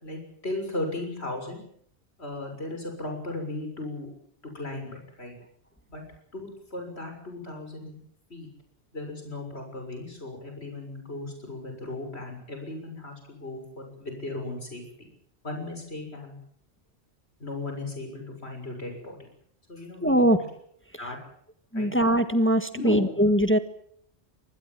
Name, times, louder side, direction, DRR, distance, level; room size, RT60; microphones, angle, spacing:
voice 1, 0.0-1.6 2.2-4.1 4.5-5.3 5.9-6.0 6.3-8.0 8.3-8.5 8.9-15.1 15.4-16.4 17.4-19.3 19.7-20.4 21.0-21.2 21.7-21.9 22.7-23.0, left 2 dB, 70° left, 4 dB, 7.0 m, -36 dB
voice 2, 20.0-20.5 21.7-23.6, equal, 10° left, 9 dB, 1.5 m, -21 dB
25.5 x 20.0 x 7.5 m, 0.66 s
omnidirectional pair, 1.1 m